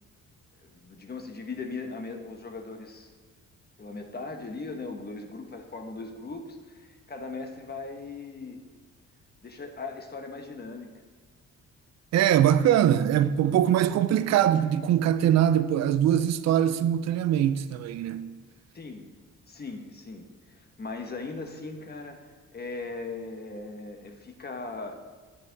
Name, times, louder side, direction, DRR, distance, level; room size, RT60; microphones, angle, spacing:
voice 1, 0.6-3.1 3.8-8.6 9.4-11.0 18.7-19.1 19.5-24.9, left 3 dB, 35° left, 1.2 m, -39 dB
voice 2, 12.1-18.4, right 10 dB, 60° right, 0.5 m, -22 dB
9.9 x 7.5 x 3.9 m
cardioid pair, 90°, 30 cm